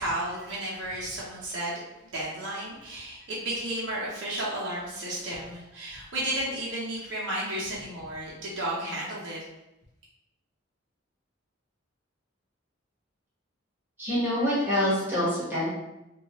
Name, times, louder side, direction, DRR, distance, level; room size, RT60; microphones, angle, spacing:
voice 1, 0.0-1.8 2.1-9.4, right 1 dB, 60° right, -6 dB, 0.6 m, -33 dB
voice 2, 14.0-15.7, left 1 dB, 10° right, -9 dB, 1.0 m, -26 dB
2.7 x 2.2 x 2.9 m, 0.91 s
head